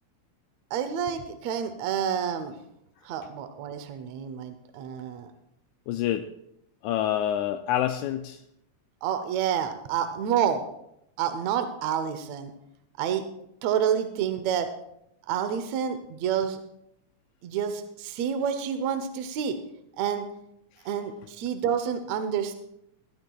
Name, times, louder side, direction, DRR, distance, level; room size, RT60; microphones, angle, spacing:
voice 1, 0.7-2.6 3.0-5.3 9.0-10.6 11.2-12.5 13.0-13.2 13.6-14.7 15.3-16.6 17.4-19.6 20.0-20.3 20.9-22.6, right 8 dB, 70° right, 8 dB, 1.9 m, -28 dB
voice 2, 5.9-6.3 6.8-8.4, left 11 dB, 85° left, 7 dB, 1.9 m, -27 dB
20.5 x 12.0 x 2.3 m, 0.78 s
omnidirectional pair, 3.4 m